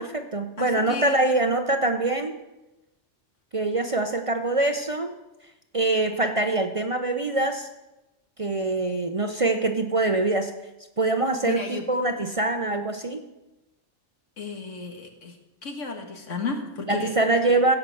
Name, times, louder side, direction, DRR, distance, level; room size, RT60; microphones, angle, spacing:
voice 1, 0.0-2.4 3.5-5.1 5.7-7.7 8.4-10.5 11.0-13.2 16.9-17.8, right 2 dB, 35° right, 6 dB, 0.7 m, -24 dB
voice 2, 0.6-1.3 11.4-11.8 14.4-15.3 15.6-17.1 17.5-17.6, left 4 dB, 80° left, 3 dB, 2.0 m, -33 dB
16.0 x 5.9 x 7.7 m, 0.99 s
omnidirectional pair, 1.2 m